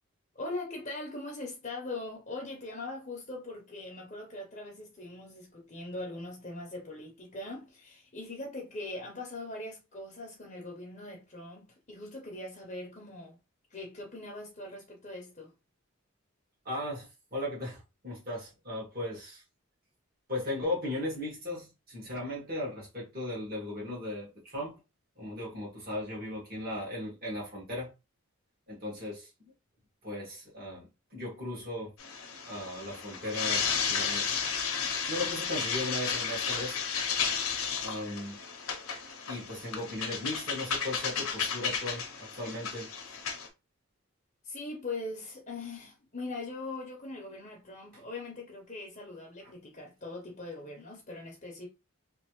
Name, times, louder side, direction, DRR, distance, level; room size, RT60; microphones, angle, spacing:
voice 1, 0.3-13.4 13.7-15.5 44.4-51.7, left 2 dB, 35° left, 0.8 m, -41 dB
voice 2, 16.6-19.4 20.3-24.8 25.1-27.9 28.7-29.5 30.0-31.9 32.3-34.3 35.1-36.8 37.8-38.7 39.3-42.9, left 1 dB, 40° right, 1.7 m, -37 dB
sound 1, 32.0-43.5, left 6 dB, 75° left, 0.8 m, -33 dB
3.2 x 2.8 x 3.0 m
head